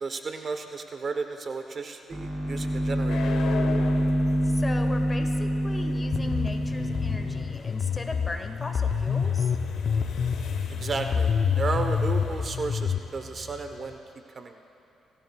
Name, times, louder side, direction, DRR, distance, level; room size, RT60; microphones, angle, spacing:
voice 1, 0.0-3.3 10.8-14.0 14.3-14.6, right 4 dB, 45° right, 6 dB, 0.8 m, -33 dB
sound 1, 2.1-7.5, equal, 15° right, 2.4 m, -26 dB
sound 2, 2.5-14.0, left 5 dB, 75° left, 1.2 m, -39 dB
voice 2, 4.4-9.5 12.2-12.3, left 2 dB, 20° left, 6 dB, 1.2 m, -38 dB
sound 3, 6.1-13.0, left 6 dB, 50° left, 0.6 m, -27 dB
28.5 x 16.0 x 2.3 m, 2.7 s
cardioid pair, 90°, 0 cm